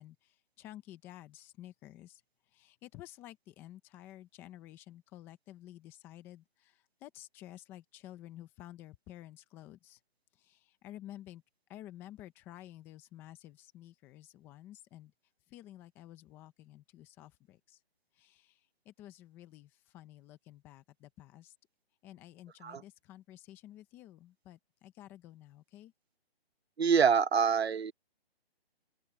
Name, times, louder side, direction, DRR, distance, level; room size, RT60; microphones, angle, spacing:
voice 1, 0.0-2.2 2.5-10.0 10.3-11.4 11.7-15.1 15.5-17.8 18.1-21.5 22.0-25.9, left 13 dB, 5° left, 0.7 m, -52 dB
voice 2, 26.8-27.9, right 6 dB, 85° right, 1.1 m, -26 dB
open air
hypercardioid pair, 165°, 31 cm